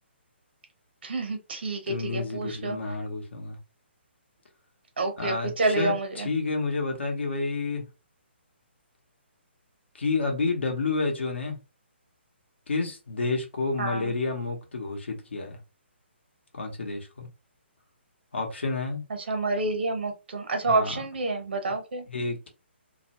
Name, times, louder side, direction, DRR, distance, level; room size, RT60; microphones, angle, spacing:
voice 1, 1.0-2.8 5.0-6.3 13.8-14.1 19.1-22.0, right 2 dB, 60° right, 0.9 m, -28 dB
voice 2, 1.9-3.6 5.2-7.8 9.9-11.6 12.7-15.6 16.5-17.3 18.3-19.0 20.6-21.0 22.1-22.5, left 3 dB, 70° left, 0.8 m, -30 dB
2.2 x 2.1 x 2.9 m
figure-of-eight pair, 135°, 6 cm